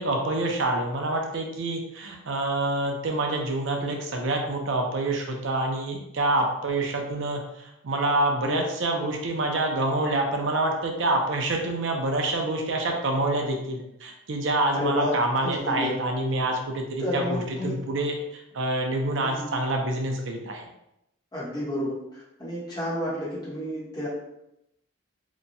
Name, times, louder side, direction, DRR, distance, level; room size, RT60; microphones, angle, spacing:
voice 1, 0.0-20.6, right 2 dB, 65° right, 2 dB, 0.5 m, -27 dB
voice 2, 14.7-15.2 15.4-15.9 17.0-17.8 19.2-19.5 21.3-24.1, left 1 dB, 20° left, -8 dB, 0.9 m, -30 dB
2.9 x 2.2 x 2.6 m, 0.84 s
head